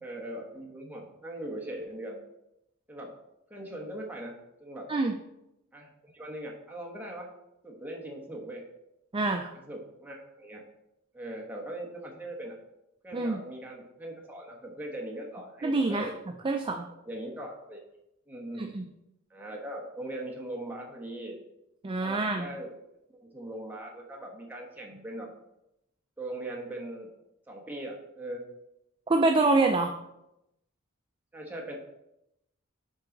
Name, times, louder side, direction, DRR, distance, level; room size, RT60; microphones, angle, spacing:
voice 1, 0.0-2.2 2.9-3.1 3.5-4.3 4.6-4.9 5.7-7.3 7.6-8.6 9.5-10.6 11.1-12.6 13.0-16.1 17.0-17.8 18.3-18.7 19.3-21.4 22.0-22.7 23.3-25.3 26.2-27.1 27.5-28.5 31.3-31.7, right 1 dB, 10° right, -2 dB, 1.1 m, -40 dB
voice 2, 9.1-9.5 13.1-13.4 15.6-16.1 16.4-16.9 18.6-18.9 21.8-22.5 29.1-29.9, right 3 dB, 25° right, 3 dB, 0.4 m, -26 dB
7.4 x 4.7 x 3.9 m, 0.87 s
head